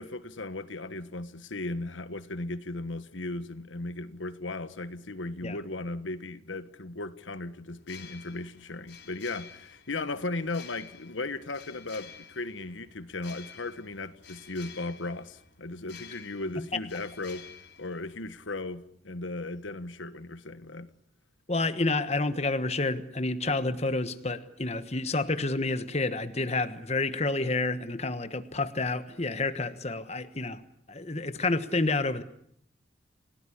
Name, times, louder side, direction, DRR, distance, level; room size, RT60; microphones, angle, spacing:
voice 1, 0.0-17.5 17.8-20.9, left 2 dB, 80° left, 1.4 m, -36 dB
sound 1, 7.8-18.6, left 7 dB, 60° left, 3.5 m, -51 dB
voice 2, 21.5-30.6 30.9-32.2, left 3 dB, 35° left, 1.3 m, -29 dB
29.5 x 17.5 x 10.0 m
head